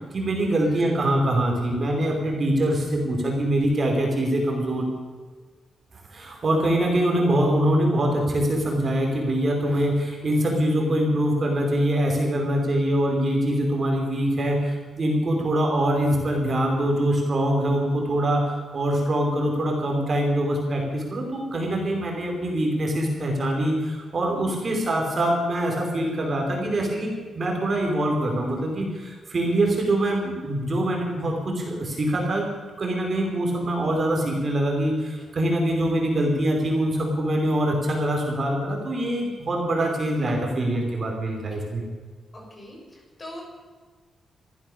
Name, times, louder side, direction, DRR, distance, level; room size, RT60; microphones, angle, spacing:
voice 1, 0.1-4.8 6.1-32.5 32.8-41.8, right 1 dB, 35° right, 0 dB, 5.0 m, -24 dB
voice 2, 24.6-24.9 42.3-43.4, left 1 dB, 25° left, -1 dB, 7.0 m, -42 dB
25.5 x 15.0 x 6.9 m, 1.4 s
wide cardioid pair, 165°, 0 cm